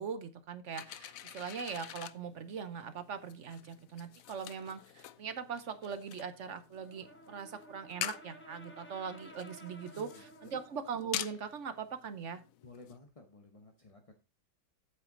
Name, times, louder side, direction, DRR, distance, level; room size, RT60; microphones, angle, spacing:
voice 1, 0.0-12.4, right 6 dB, 55° right, 11 dB, 0.9 m, -41 dB
sound 1, 0.7-13.0, left 12 dB, 75° left, 0.7 m, -46 dB
Brass instrument, 6.7-10.9, right 1 dB, 10° left, 1.0 m, -54 dB
voice 2, 9.9-10.5 12.6-14.1, left 3 dB, 25° left, 4 dB, 0.7 m, -54 dB
8.3 x 8.2 x 3.9 m, 0.28 s
omnidirectional pair, 2.1 m